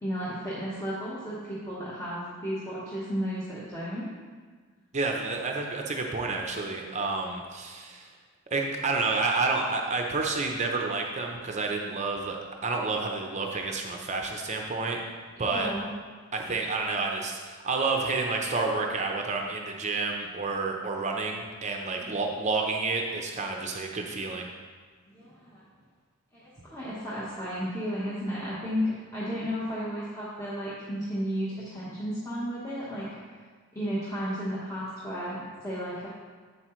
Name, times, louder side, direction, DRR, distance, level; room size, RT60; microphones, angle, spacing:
voice 1, 0.0-4.2 15.4-15.9 22.0-22.1 25.1-25.6 26.3-33.1 33.7-36.1, equal, 15° left, -9 dB, 1.2 m, -33 dB
voice 2, 4.9-8.1 8.5-12.4 12.6-15.0 15.4-15.7 16.3-24.5, right 3 dB, 35° right, 1 dB, 0.7 m, -29 dB
8.5 x 7.6 x 3.1 m, 1.5 s
head